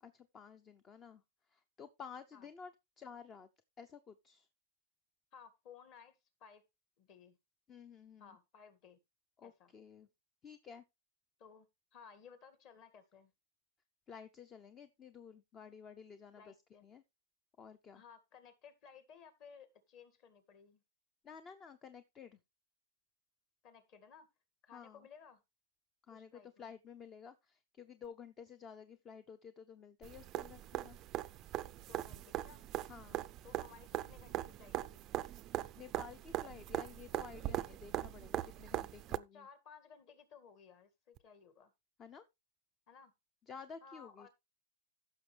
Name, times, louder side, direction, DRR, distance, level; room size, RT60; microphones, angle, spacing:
voice 1, 0.0-2.7 3.0-3.5 3.8-4.5 7.7-8.4 9.4-10.1 10.4-10.8 14.1-16.6 16.8-17.0 17.6-18.0 21.2-22.4 24.7-25.1 26.1-31.0 32.9-33.2 35.8-39.5 42.0-42.2 43.5-44.3, left 6 dB, 20° left, 0.6 m, -53 dB
voice 2, 5.3-6.6 7.0-7.4 8.2-9.0 9.4-9.7 11.4-13.3 16.4-16.9 17.9-20.8 23.6-24.3 24.6-25.4 26.1-26.7 31.7-32.6 33.4-35.1 39.3-41.7 42.9-43.1 43.8-44.3, left 6 dB, 40° left, 2.0 m, -58 dB
sound 1, 30.0-39.2 41.2-41.3, right 14 dB, 30° right, 0.4 m, -41 dB
15.0 x 6.1 x 3.3 m
supercardioid pair, 155°, 0 cm